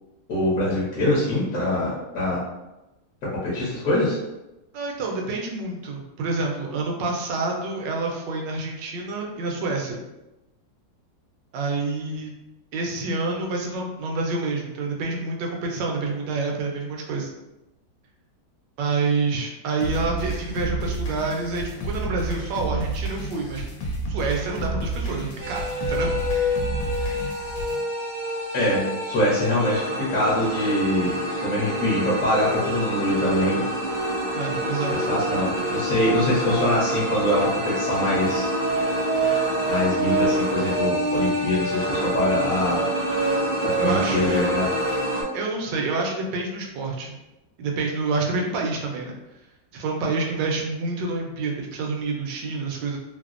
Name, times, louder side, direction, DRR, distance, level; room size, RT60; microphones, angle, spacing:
voice 1, 0.3-2.4 3.4-4.2 28.5-33.6 35.1-38.5 39.7-42.8 43.6-44.7, left 1 dB, 60° left, -7 dB, 1.1 m, -24 dB
voice 2, 4.7-10.0 11.5-12.3 12.7-17.3 18.8-23.6 24.1-25.6 25.9-26.1 34.3-35.1 43.8-44.4 45.3-47.2 47.6-49.2 49.7-53.0, right 3 dB, 80° right, 0 dB, 1.2 m, -28 dB
sound 1, 19.8-27.8, right 2 dB, 80° left, 1.2 m, -30 dB
sound 2, 25.4-45.2, right 1 dB, 50° right, 0.7 m, -26 dB
3.3 x 2.0 x 2.4 m, 0.97 s
omnidirectional pair, 1.9 m